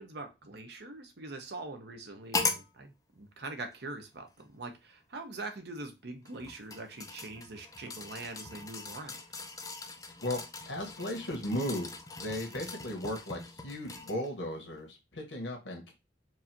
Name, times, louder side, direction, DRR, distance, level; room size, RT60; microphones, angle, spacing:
voice 1, 0.0-9.2, right 2 dB, 65° right, 6 dB, 0.9 m, -43 dB
sound 1, 2.3-2.7 3.7-3.8 6.2-14.3 14.8-14.9, left 3 dB, 20° left, 0.5 m, -39 dB
voice 2, 10.2-15.9, left 1 dB, 85° left, 2 dB, 1.4 m, -36 dB
4.7 x 2.7 x 2.8 m, 0.25 s
head